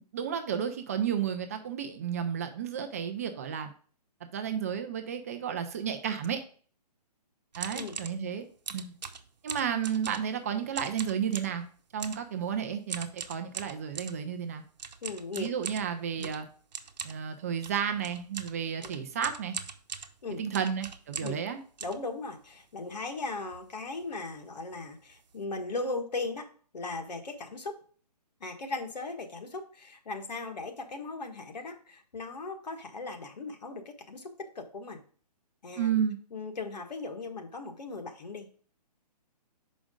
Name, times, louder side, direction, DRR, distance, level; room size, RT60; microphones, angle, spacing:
voice 1, 0.1-3.7 4.3-6.4 7.6-8.5 8.7-8.9 9.4-11.6 11.9-14.6 15.4-16.5 17.0-19.6 20.3-21.6 35.8-36.2, right 8 dB, 20° right, 7 dB, 0.4 m, -32 dB
sound 1, 7.5-8.2 8.7-10.4 10.7-11.6 12.0-12.3 12.9-14.2 14.8-21.5 21.8-22.6 23.1-23.2 23.4-23.7 24.0-24.2 24.7-24.8 25.1-25.4, right 6 dB, 80° right, 0.8 m, -41 dB
voice 2, 15.0-15.5 16.2-16.3 18.8-18.9 20.2-20.4 21.2-21.4 21.8-26.5 26.7-27.8 28.4-34.3 34.5-35.0 35.6-35.9 36.3-38.5, left 3 dB, 75° left, 3 dB, 1.5 m, -38 dB
6.2 x 5.0 x 3.6 m, 0.43 s
hypercardioid pair, 160°, 21 cm